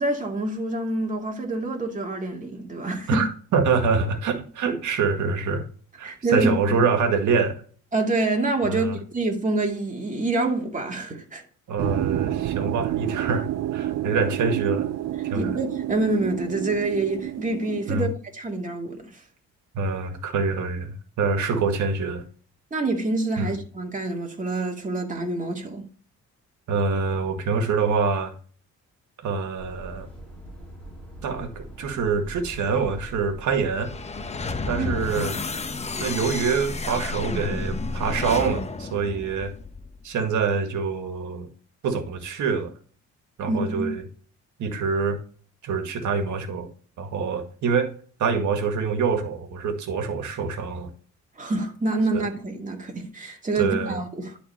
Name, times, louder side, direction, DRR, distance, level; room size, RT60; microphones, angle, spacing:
voice 1, 0.0-3.3 6.0-6.8 7.9-11.4 15.3-19.1 22.7-25.8 34.7-34.9 43.5-43.9 51.4-54.4, right 2 dB, 25° right, 2.3 m, -26 dB
voice 2, 3.1-5.7 6.0-7.6 8.7-9.0 11.7-14.9 15.2-15.5 17.9-18.1 19.7-22.2 23.4-23.5 26.7-28.3 29.2-30.1 31.2-33.9 34.7-35.3 36.0-39.5 40.0-41.5 41.8-42.7 43.4-44.0 44.6-45.2 45.6-46.7 47.0-47.9 48.2-50.9 53.6-54.0, right 5 dB, 75° right, 1.9 m, -25 dB
sound 1, 11.8-18.1, right 13 dB, 60° right, 0.6 m, -29 dB
Truck, 29.6-35.2, right 1 dB, 5° left, 3.6 m, -41 dB
sound 2, 33.8-40.0, left 3 dB, 20° left, 0.9 m, -31 dB
11.0 x 4.2 x 4.3 m
cardioid pair, 90°, 30 cm